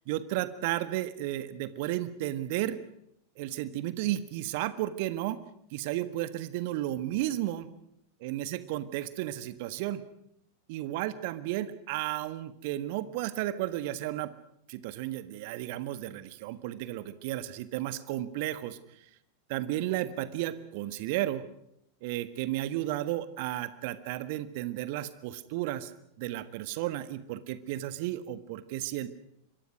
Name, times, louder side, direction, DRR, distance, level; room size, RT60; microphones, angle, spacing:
voice 1, 0.1-2.8 3.4-5.4 5.7-7.7 8.2-10.0 10.7-14.3 14.7-18.8 19.5-21.4 22.0-25.9 26.2-29.1, right 14 dB, 50° right, 14 dB, 1.6 m, -33 dB
26.0 x 23.0 x 6.2 m, 0.75 s
figure-of-eight pair, 90°, 0 cm